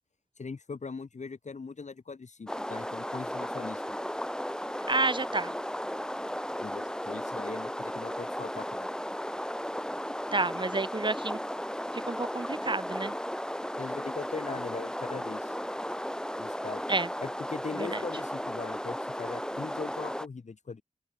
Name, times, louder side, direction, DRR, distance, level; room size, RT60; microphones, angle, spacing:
voice 1, 0.4-3.8 6.6-8.9 13.8-15.6 16.4-16.9 17.2-20.8, left 4 dB, 80° left, 2.7 m, -40 dB
sound 1, 2.5-20.3, equal, 5° left, 3.1 m, -35 dB
voice 2, 4.9-5.5 10.3-11.4 12.1-13.1 16.9-17.1 17.8-18.0, right 3 dB, 40° right, 2.1 m, -29 dB
open air
wide cardioid pair, 75°, 12 cm